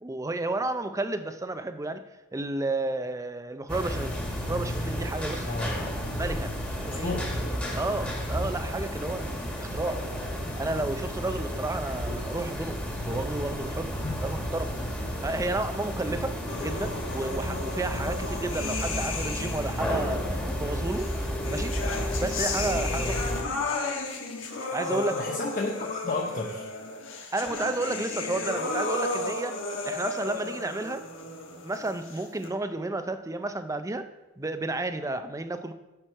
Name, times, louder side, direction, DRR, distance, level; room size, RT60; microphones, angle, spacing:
voice 1, 0.0-2.0 2.3-4.2 4.5-5.5 6.2-7.2 7.7-10.0 10.6-12.8 13.1-13.9 14.2-14.7 15.2-21.1 21.5-21.7 22.2-23.2 24.7-25.2 27.3-29.6 29.8-31.0 31.6-34.1 34.4-35.7, right 2 dB, 15° right, 9 dB, 0.5 m, -31 dB
sound 1, 3.7-23.4, equal, 10° left, 1.6 m, -32 dB
voice 2, 5.5-6.0 6.9-7.2 14.0-14.2 24.9-26.7, left 3 dB, 45° left, -1 dB, 0.8 m, -32 dB
sound 2, 16.5-19.9 20.9-32.5, left 3 dB, 70° left, 1.3 m, -34 dB
9.0 x 6.2 x 4.5 m, 1.1 s
head